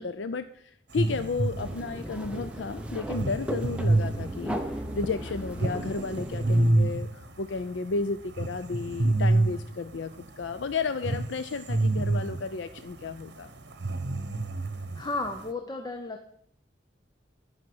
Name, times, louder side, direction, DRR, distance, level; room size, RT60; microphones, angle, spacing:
voice 1, 0.0-4.6 4.9-10.1 10.4-13.5, left 4 dB, 80° left, 11 dB, 0.5 m, -33 dB
sound 1, 0.9-9.6 9.9-15.5, right 2 dB, 65° right, 1.1 m, -28 dB
sound 2, 1.6-6.7, equal, 5° right, 0.8 m, -37 dB
voice 2, 14.9-16.3, left 2 dB, 20° left, 5 dB, 0.8 m, -33 dB
11.5 x 5.8 x 7.8 m, 0.71 s
head